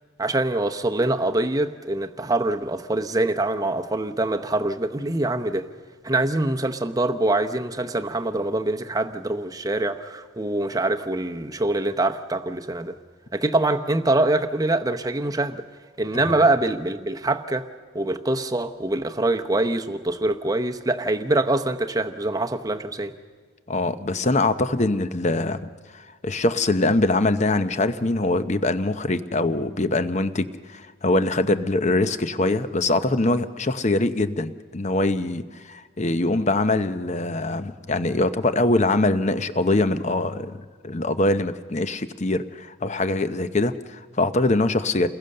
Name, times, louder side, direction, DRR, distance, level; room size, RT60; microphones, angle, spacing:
voice 1, 0.2-5.7 6.0-12.9 13.3-15.6 16.0-17.6 17.9-23.1, right 2 dB, 15° right, 0.8 m, -24 dB
voice 2, 23.7-25.7 25.9-45.1, left 2 dB, 35° left, 0.8 m, -23 dB
29.0 x 21.0 x 6.7 m
head